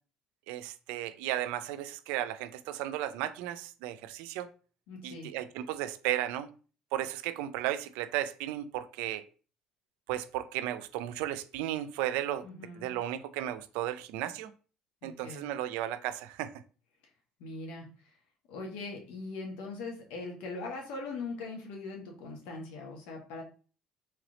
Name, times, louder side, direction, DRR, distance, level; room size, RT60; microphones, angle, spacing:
voice 1, 0.5-4.5 5.0-6.5 6.9-9.3 10.1-12.5 12.8-14.5 15.0-16.5, right 13 dB, 85° right, 0.4 m, -34 dB
voice 2, 4.9-5.3 12.4-12.9 15.0-15.5 17.4-18.1 18.5-23.4, left 3 dB, 80° left, 1.3 m, -41 dB
3.3 x 3.2 x 3.9 m
supercardioid pair, 85°, 2 cm